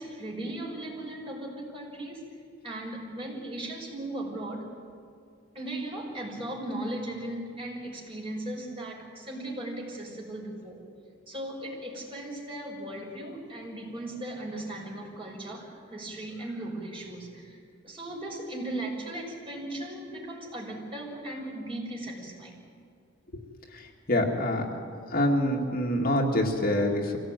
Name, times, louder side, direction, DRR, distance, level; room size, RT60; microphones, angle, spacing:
voice 1, 0.0-2.3 2.6-4.7 5.5-10.8 11.3-17.6 17.8-22.6, right 1 dB, 25° right, -2 dB, 6.0 m, -37 dB
voice 2, 24.1-24.8 25.1-27.2, left 1 dB, 50° left, 0 dB, 2.3 m, -25 dB
25.0 x 17.5 x 9.1 m, 2.3 s
head